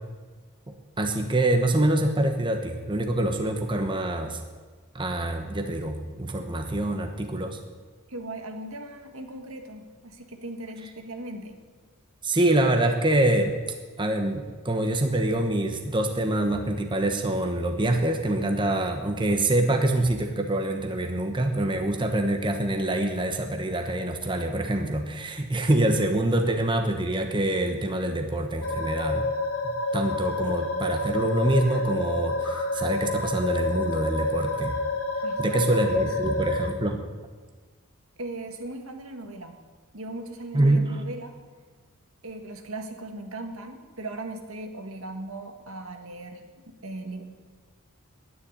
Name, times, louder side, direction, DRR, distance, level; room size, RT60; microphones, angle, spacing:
voice 1, 1.0-4.4 4.9-7.6 12.2-13.6 14.0-29.3 29.6-34.7 35.4-37.0 40.5-40.9, right 1 dB, 25° right, 4 dB, 1.1 m, -25 dB
voice 2, 8.1-11.5 35.2-36.0 38.2-39.6 39.9-41.4 42.2-47.2, right 2 dB, 75° right, 5 dB, 1.7 m, -38 dB
sound 1, 28.6-36.7, left 2 dB, 90° left, 2.4 m, -29 dB
10.0 x 10.0 x 10.0 m, 1.4 s
head